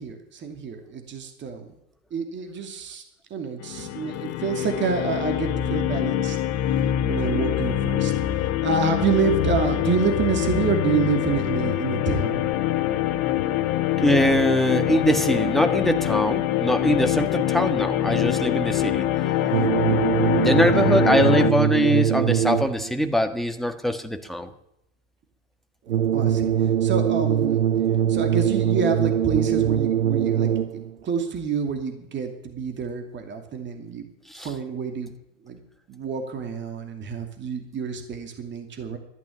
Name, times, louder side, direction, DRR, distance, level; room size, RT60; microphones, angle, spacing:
voice 1, 0.0-1.7 2.1-3.0 3.3-6.4 7.1-8.1 8.6-12.4 25.9-26.5 26.8-27.6 28.1-34.0 34.4-35.1 35.4-35.6 35.9-39.0, right 5 dB, 30° right, 5 dB, 2.7 m, -27 dB
sound 1, 3.6-21.5, left 12 dB, 45° left, 1.0 m, -24 dB
voice 2, 14.0-19.1 20.4-24.5 34.3-34.5, equal, ahead, 6 dB, 1.6 m, -22 dB
sound 2, 19.5-22.9 25.9-30.9, right 9 dB, 90° right, 0.6 m, -22 dB
13.0 x 10.5 x 9.8 m, 0.83 s
hypercardioid pair, 90°, 35 cm